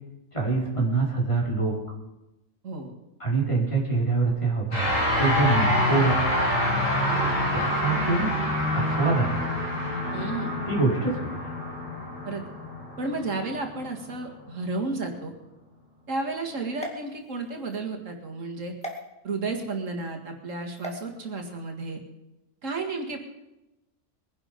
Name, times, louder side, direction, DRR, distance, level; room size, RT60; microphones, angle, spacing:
voice 1, 0.3-1.7 3.2-4.9 5.2-6.3 7.5-8.3 8.7-9.4 10.7-11.5, right 3 dB, 25° left, -4 dB, 4.6 m, -25 dB
sound 1, 4.7-14.2, left 1 dB, 90° left, 8.3 m, -26 dB
voice 2, 10.1-10.6 12.3-12.4 13.0-15.3 16.1-18.7 19.2-22.0 22.6-23.2, right 3 dB, 80° right, 3 dB, 2.3 m, -32 dB
sound 2, 16.7-17.8 18.8-19.0 20.8-21.0, equal, 5° left, 2.2 m, -38 dB
22.0 x 11.0 x 5.2 m, 0.95 s
omnidirectional pair, 1.3 m